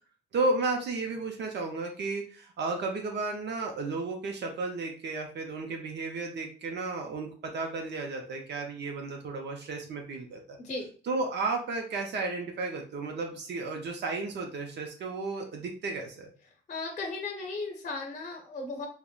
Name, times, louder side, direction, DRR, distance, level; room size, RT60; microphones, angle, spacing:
voice 1, 0.3-10.6 11.0-16.3, right 3 dB, 60° right, 2 dB, 0.6 m, -33 dB
voice 2, 10.6-10.9 16.7-18.9, left 3 dB, 40° left, 1 dB, 0.7 m, -36 dB
3.5 x 2.1 x 2.3 m, 0.42 s
cardioid pair, 90°, 20 cm